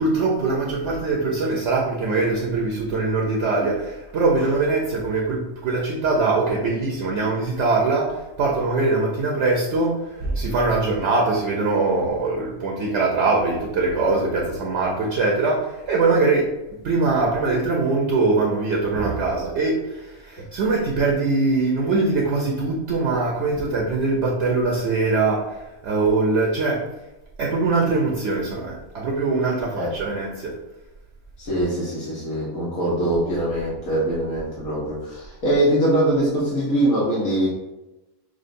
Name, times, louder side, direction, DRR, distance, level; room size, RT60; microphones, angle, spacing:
voice 1, 0.0-16.5 16.8-26.8 27.4-30.6, right 3 dB, 65° right, -1 dB, 0.8 m, -22 dB
voice 2, 31.4-37.5, right 1 dB, 80° left, -6 dB, 1.4 m, -22 dB
6.2 x 2.2 x 2.5 m, 0.99 s
omnidirectional pair, 1.5 m